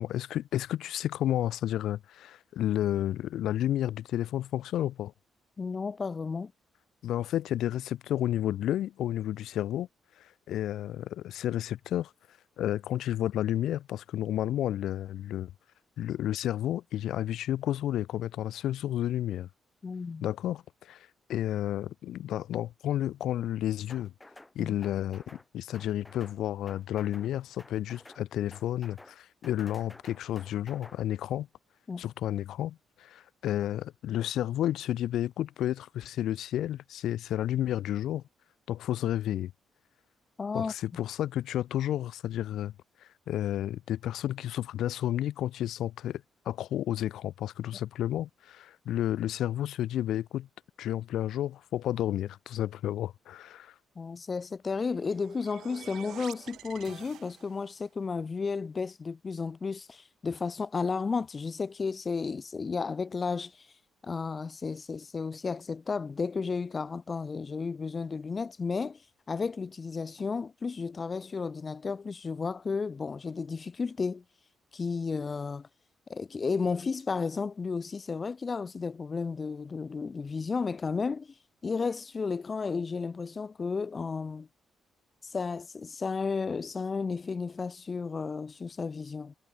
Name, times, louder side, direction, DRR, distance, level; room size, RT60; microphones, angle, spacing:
voice 1, 0.0-5.1 7.0-9.9 10.2-12.1 12.6-15.5 16.0-19.5 20.2-24.1 24.5-31.5 32.0-38.2 38.7-39.5 40.5-42.7 43.0-50.5 50.8-53.7, left 12 dB, 80° left, 0.6 m, -31 dB
voice 2, 5.6-6.5 19.8-20.3 24.6-24.7 31.9-32.0 40.4-40.7 53.9-63.7 64.0-69.0 69.3-74.2 74.7-75.7 76.1-81.3 81.6-84.5 85.2-89.3, left 4 dB, 35° left, 1.4 m, -33 dB
sound 1, 23.9-24.5 24.8-25.5 25.7-26.4 26.7-27.3 27.6-28.2 28.5-29.2 29.4-31.0, left 2 dB, 10° left, 3.3 m, -52 dB
sound 2, 54.8-57.8, right 11 dB, 70° right, 3.7 m, -48 dB
cardioid pair, 90°, 0 cm